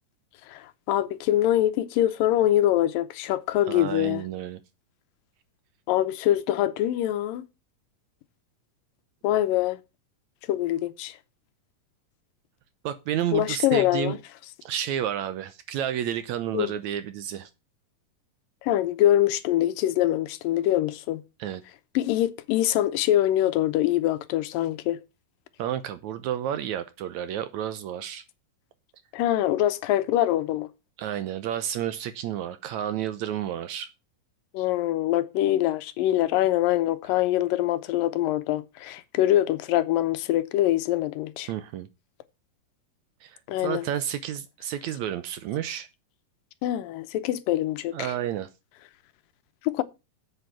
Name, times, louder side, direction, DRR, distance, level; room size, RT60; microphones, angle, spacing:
voice 1, 0.5-4.2 5.9-7.5 9.2-9.8 10.5-11.2 13.3-14.2 16.5-16.7 18.6-21.2 22.0-25.0 29.1-30.7 34.5-41.5 43.5-43.8 46.6-48.1 49.6-49.8, left 13 dB, 85° left, 2.6 m, -24 dB
voice 2, 3.7-4.6 12.8-14.2 14.7-17.5 21.4-21.6 25.6-28.2 31.0-33.9 41.5-41.9 43.2-43.4 43.6-45.9 47.9-48.5, right 10 dB, 75° right, 1.8 m, -31 dB
8.0 x 8.0 x 6.1 m
omnidirectional pair, 3.9 m